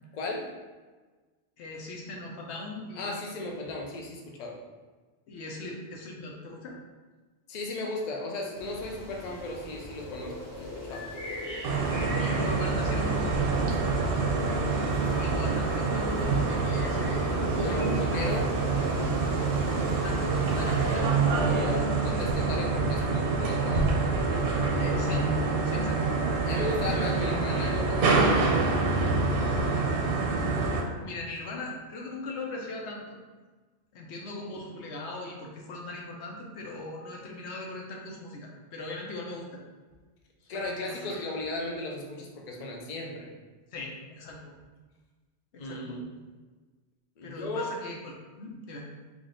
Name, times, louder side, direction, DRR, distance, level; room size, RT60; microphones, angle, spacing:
voice 1, 0.1-0.5 2.9-4.6 7.5-11.1 17.6-18.5 21.5-23.9 24.2-24.5 26.4-28.5 40.5-43.3 45.6-46.0 47.2-47.7, left 2 dB, 50° left, 0 dB, 0.6 m, -35 dB
voice 2, 1.6-3.3 5.3-6.8 11.9-13.9 15.0-18.4 20.0-21.2 24.8-25.3 25.6-26.2 31.0-33.2 33.9-39.6 40.4-41.3 43.7-44.4 45.5-46.0 47.2-48.9, left 2 dB, 80° left, -1 dB, 1.0 m, -39 dB
sound 1, 8.5-21.0, left 1 dB, 25° left, 1.0 m, -40 dB
sound 2, 11.6-30.8, right 3 dB, 65° right, 0.8 m, -26 dB
3.7 x 2.4 x 3.7 m, 1.3 s
omnidirectional pair, 1.1 m